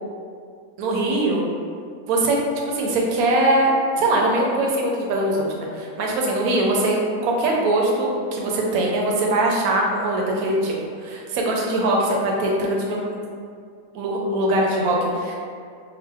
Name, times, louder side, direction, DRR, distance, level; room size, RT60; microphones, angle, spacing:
voice 1, 0.8-1.4 2.1-2.4 2.7-7.0 7.2-10.7 11.0-13.1 13.9-15.4, right 1 dB, 70° right, -1 dB, 1.0 m, -21 dB
2.8 x 2.3 x 3.3 m, 2.3 s
omnidirectional pair, 1.7 m